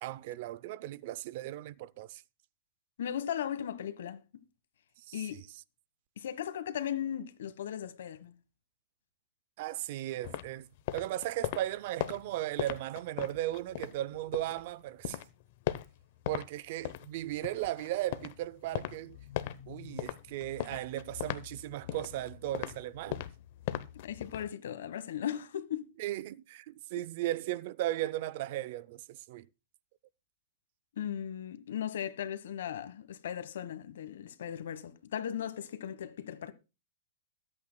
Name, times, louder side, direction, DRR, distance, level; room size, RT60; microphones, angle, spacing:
voice 1, 0.0-2.2 5.0-5.4 9.6-10.7 10.9-15.2 16.3-19.2 19.7-23.3 26.0-29.5, right 14 dB, 50° right, 0.5 m, -36 dB
voice 2, 3.0-4.2 5.1-5.4 6.2-8.3 24.0-25.9 31.0-36.5, left 9 dB, 75° left, 1.3 m, -37 dB
sound 1, 10.2-14.6 15.0-16.5 16.8-24.5, left 13 dB, 50° left, 0.8 m, -39 dB
22.0 x 8.6 x 2.2 m
hypercardioid pair, 155°, 0 cm